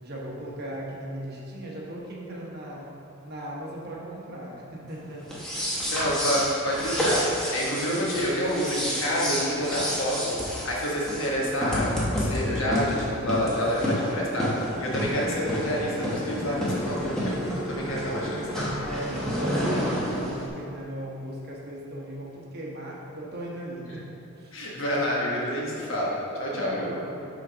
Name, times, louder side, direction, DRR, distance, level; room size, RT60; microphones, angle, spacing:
voice 1, 0.0-2.9 3.2-5.9 18.8-24.6 26.5-27.3, right 1 dB, 45° right, -4 dB, 1.0 m, -37 dB
sound 1, 5.2-20.5, equal, ahead, 0.9 m, -29 dB
voice 2, 5.8-17.4 17.7-18.7 23.9-24.0 24.5-26.9, equal, 60° left, -5 dB, 1.3 m, -28 dB
6.3 x 3.9 x 4.9 m, 2.8 s
head